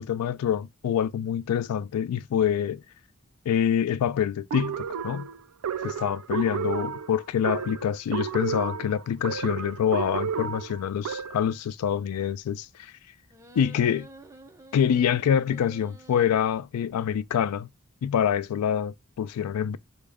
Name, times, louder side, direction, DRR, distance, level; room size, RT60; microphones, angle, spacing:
voice 1, 0.0-2.8 3.5-5.3 5.8-12.9 13.6-14.1 14.7-17.7 18.0-19.8, left 8 dB, 85° left, 0.3 m, -26 dB
sound 1, 4.5-11.5, right 7 dB, 75° right, 0.4 m, -32 dB
sound 2, 13.3-16.3, right 2 dB, 15° right, 0.5 m, -50 dB
3.4 x 2.1 x 3.4 m
head